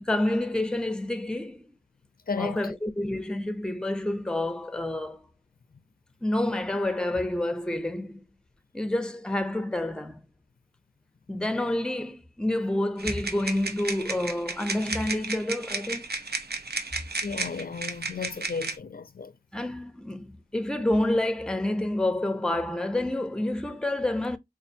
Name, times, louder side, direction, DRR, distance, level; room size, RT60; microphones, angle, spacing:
voice 1, 0.0-1.7 2.4-5.2 6.2-8.2 8.7-10.2 11.3-16.1 19.5-24.4, left 1 dB, 5° left, 0.5 m, -28 dB
voice 2, 2.3-2.6 17.2-19.3, left 5 dB, 65° left, 0.4 m, -34 dB
sound 1, 13.0-18.8, right 3 dB, 85° right, 0.6 m, -33 dB
4.2 x 2.5 x 2.6 m
wide cardioid pair, 40°, 16 cm